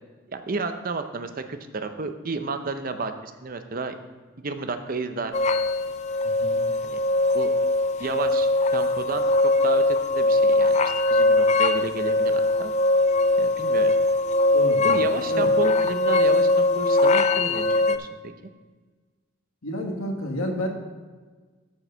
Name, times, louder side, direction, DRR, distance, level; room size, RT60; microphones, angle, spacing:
voice 1, 0.3-4.0 4.4-5.3 6.8-7.0 7.3-7.5 8.0-9.3 9.6-12.7 13.4-13.9 14.8-18.1, right 3 dB, 40° right, 8 dB, 0.6 m, -32 dB
sound 1, 5.3-18.0, left 2 dB, 30° left, 0.3 m, -21 dB
voice 2, 6.2-6.6 14.5-15.0 15.3-15.5 19.6-20.7, equal, 85° left, 2 dB, 1.5 m, -30 dB
8.6 x 4.7 x 6.7 m, 1.4 s
head